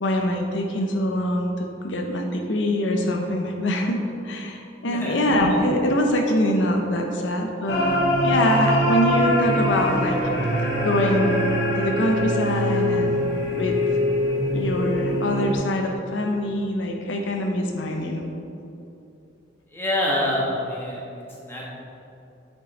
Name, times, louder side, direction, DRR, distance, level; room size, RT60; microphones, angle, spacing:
voice 1, 0.0-10.2 10.8-11.4 11.8-13.3 13.6-13.8 14.5-18.3, left 1 dB, 75° left, 2 dB, 0.7 m, -24 dB
voice 2, 4.8-5.2 19.7-21.7, left 1 dB, 10° left, -4 dB, 1.3 m, -26 dB
sound 1, 7.7-15.5, equal, 60° left, 1.3 m, -23 dB
8.3 x 5.2 x 4.2 m, 2.8 s
head